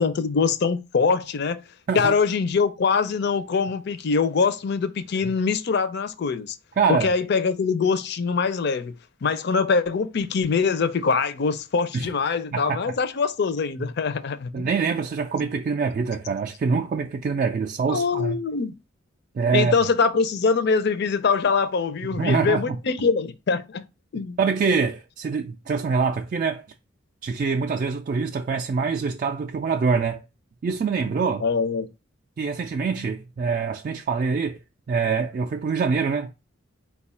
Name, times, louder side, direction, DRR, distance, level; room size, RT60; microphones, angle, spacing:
voice 1, 0.0-1.6 1.9-6.6 6.9-8.9 9.2-14.7 17.9-18.8 19.5-23.8 24.1-24.4 31.4-31.9, left 5 dB, 55° left, 0.5 m, -23 dB
voice 2, 6.8-7.1 11.9-12.1 12.5-12.8 14.5-18.4 19.4-19.7 22.1-22.8 24.4-26.6 27.2-30.2 30.6-31.5 32.4-34.6 34.9-36.3, right 5 dB, 45° right, 0.3 m, -24 dB
4.4 x 2.3 x 4.1 m
head